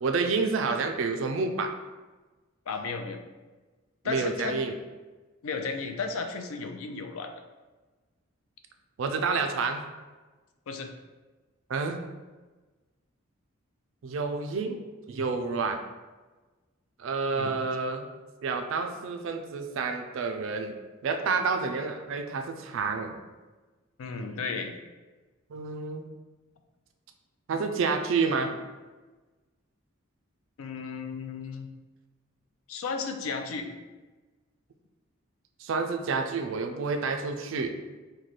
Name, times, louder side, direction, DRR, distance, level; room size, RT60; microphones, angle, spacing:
voice 1, 0.0-1.7 4.0-4.7 9.0-9.8 11.7-12.0 14.0-14.8 15.1-15.8 17.0-18.1 18.4-20.7 21.0-23.2 25.5-26.0 27.5-28.6 35.6-37.7, right 4 dB, 65° right, 6 dB, 0.3 m, -29 dB
voice 2, 2.7-3.2 4.0-4.7 5.4-7.3 10.7-10.9 17.4-17.5 24.0-24.7 30.6-31.7 32.7-33.7, left 4 dB, 75° left, 5 dB, 0.4 m, -34 dB
3.1 x 2.2 x 3.9 m, 1.2 s
head